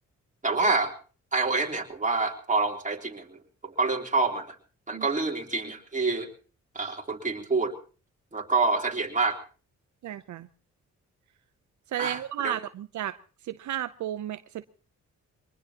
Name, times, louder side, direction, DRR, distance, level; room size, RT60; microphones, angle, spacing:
voice 1, 0.4-0.9 1.3-4.5 4.9-6.3 6.8-7.7 8.3-9.4 12.0-12.6, right 3 dB, 25° right, 1 dB, 3.4 m, -27 dB
voice 2, 10.0-10.5 11.9-13.2 13.5-14.6, right 12 dB, 80° right, 11 dB, 0.7 m, -33 dB
23.5 x 20.0 x 2.9 m, 0.37 s
cardioid pair, 70°, 29 cm